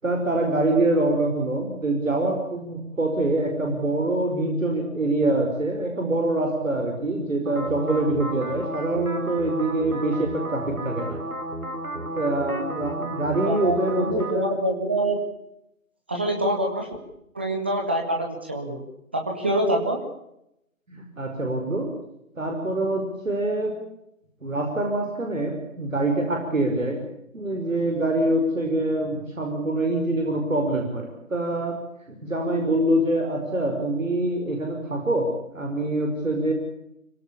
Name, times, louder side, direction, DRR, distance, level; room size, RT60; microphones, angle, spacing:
voice 1, 0.0-11.2 12.0-14.5 20.9-21.9 22.4-23.8 24.4-27.0 27.3-31.8 32.1-36.5, right 2 dB, 65° right, 2 dB, 5.6 m, -25 dB
sound 1, 7.5-14.3, right 2 dB, 80° right, 4.4 m, -33 dB
voice 2, 13.5-15.2 16.1-16.9 17.3-18.9 19.1-20.0, right 1 dB, 10° right, 2 dB, 0.9 m, -25 dB
25.5 x 17.0 x 8.5 m, 0.81 s
figure-of-eight pair, 150°, 43 cm